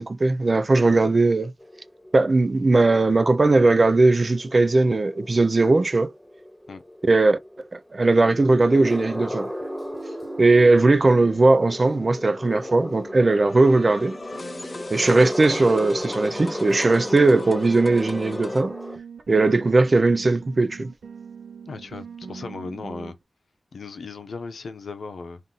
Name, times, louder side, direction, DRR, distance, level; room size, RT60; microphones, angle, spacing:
voice 1, 0.0-1.5 2.1-6.1 7.0-7.4 7.7-9.5 10.4-14.2 14.9-18.7 19.3-20.9, right 3 dB, 45° right, 0.4 m, -19 dB
sound 1, 1.6-19.0, left 1 dB, 10° left, 1.3 m, -35 dB
sound 2, 9.3-23.1, right 5 dB, 85° right, 0.6 m, -42 dB
sound 3, 13.1-18.6, left 2 dB, 40° left, 0.3 m, -38 dB
voice 2, 21.7-23.2 23.7-25.4, left 4 dB, 85° left, 0.7 m, -36 dB
3.7 x 2.6 x 3.9 m
wide cardioid pair, 75°, 0 cm